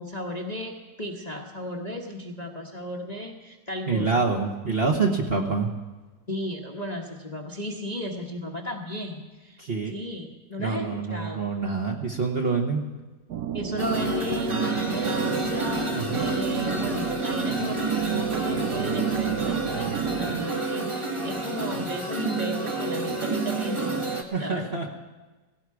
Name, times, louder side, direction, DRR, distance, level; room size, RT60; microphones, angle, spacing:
voice 1, 0.0-4.2 6.3-9.6 9.9-11.5 13.5-23.9 24.4-24.7, left 1 dB, 25° left, 1 dB, 1.1 m, -34 dB
voice 2, 3.9-5.7 9.6-9.9 10.6-12.8 15.9-16.3 24.3-24.9, right 4 dB, 35° right, 2 dB, 1.2 m, -26 dB
sound 1, 13.3-20.5, right 9 dB, 65° right, 1.1 m, -31 dB
sound 2, 13.8-24.2, right 2 dB, 20° right, 1.1 m, -29 dB
17.0 x 16.5 x 4.8 m, 1.2 s
omnidirectional pair, 2.0 m